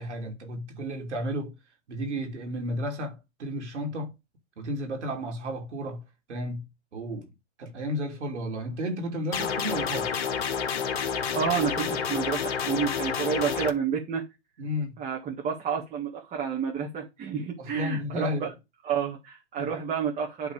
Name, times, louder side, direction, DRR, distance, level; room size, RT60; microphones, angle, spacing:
voice 1, 0.0-1.6 1.9-4.1 4.6-6.0 6.3-6.7 6.9-7.3 7.6-10.2 14.6-14.9 17.6-18.5 19.6-19.7, equal, 75° right, 3.1 m, -33 dB
sound 1, 9.3-13.7, left 7 dB, 55° left, 1.5 m, -29 dB
voice 2, 11.3-14.3 15.0-18.5 18.8-20.5, right 7 dB, 20° right, 1.8 m, -30 dB
10.5 x 3.9 x 4.9 m
hypercardioid pair, 120°, 35 cm